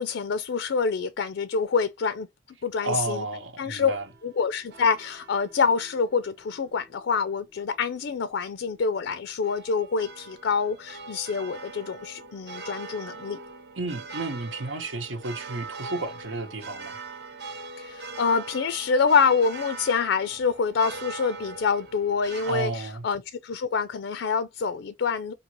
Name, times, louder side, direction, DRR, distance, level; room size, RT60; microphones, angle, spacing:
voice 1, 0.0-2.3 2.6-3.2 3.6-3.9 4.2-13.4 17.8-25.3, left 5 dB, 65° left, 0.4 m, -26 dB
voice 2, 2.8-4.1 13.8-17.0 22.5-23.0, right 2 dB, 85° right, 1.1 m, -32 dB
sound 1, 3.9-22.5, right 4 dB, 60° right, 1.0 m, -42 dB
5.2 x 2.8 x 2.9 m
head